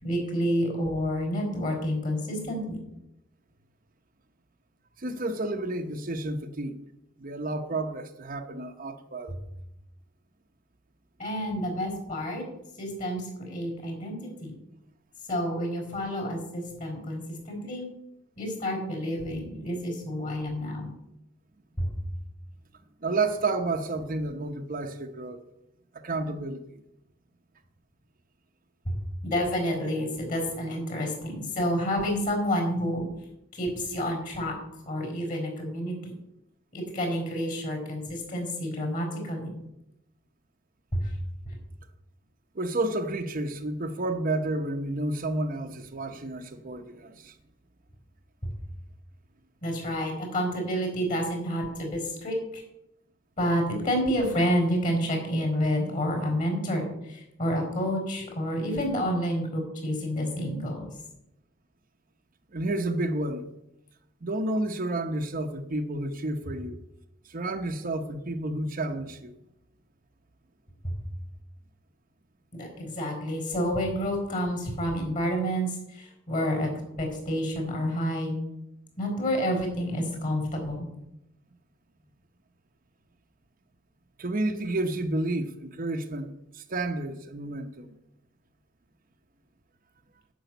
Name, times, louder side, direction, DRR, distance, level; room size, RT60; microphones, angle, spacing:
voice 1, 0.0-2.8 9.3-9.4 11.2-12.5 12.8-14.6 15.3-17.9 18.4-20.9 21.8-21.9 28.8-29.0 29.2-33.0 33.5-34.5 34.8-36.1 36.7-39.5 40.9-41.1 41.5-41.6 48.4-48.5 49.6-52.6 53.4-60.9 70.8-70.9 72.5-76.7 77.0-78.4 79.0-80.9, equal, 45° left, 4.8 m, -29 dB
voice 2, 5.0-6.8 7.2-9.4 23.0-25.4 26.0-26.8 42.5-47.3 62.5-63.5 64.2-66.8 67.2-69.3 84.2-87.9, right 2 dB, 45° right, 0.9 m, -31 dB
10.0 x 6.2 x 8.0 m
head